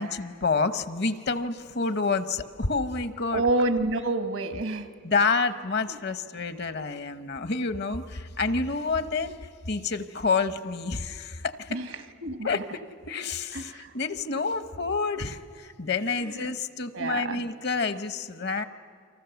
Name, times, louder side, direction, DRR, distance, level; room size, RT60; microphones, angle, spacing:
voice 1, 0.0-3.4 5.0-9.4 9.7-11.8 12.4-18.6, left 4 dB, 55° left, 11 dB, 0.9 m, -28 dB
voice 2, 3.3-4.9 5.9-6.0 11.7-11.9 12.2-12.6 13.5-13.9 16.4-16.5 16.9-17.4, right 2 dB, 75° right, 8 dB, 1.4 m, -28 dB
29.5 x 24.5 x 7.0 m, 2.2 s
head